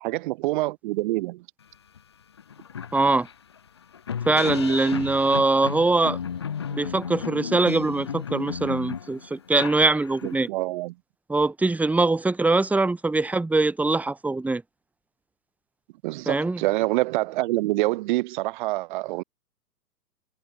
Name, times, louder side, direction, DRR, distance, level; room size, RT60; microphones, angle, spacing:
voice 1, 0.0-1.4 10.2-10.9 16.0-19.2, right 19 dB, 30° right, 0.8 m, -26 dB
sound 1, 2.0-2.1 2.4-10.4, left 7 dB, 20° left, 0.4 m, -34 dB
voice 2, 2.9-3.3 4.3-6.2 6.7-10.5 11.3-14.6 16.3-16.6, right 3 dB, 5° right, 1.1 m, -22 dB
figure-of-eight pair, 120°, 49 cm